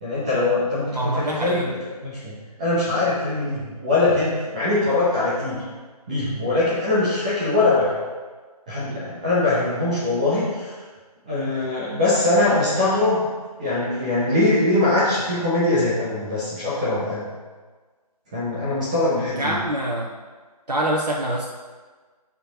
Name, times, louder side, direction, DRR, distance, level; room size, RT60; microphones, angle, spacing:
voice 1, 0.0-5.6 6.1-7.9 8.7-10.7 11.3-13.3 13.6-17.3 18.3-19.6, left 2 dB, 10° right, -9 dB, 0.9 m, -22 dB
voice 2, 0.9-1.7 19.4-20.1 20.7-21.5, right 1 dB, 80° right, -3 dB, 1.2 m, -25 dB
12.5 x 4.5 x 4.1 m, 1.4 s
figure-of-eight pair, 165°, 20 cm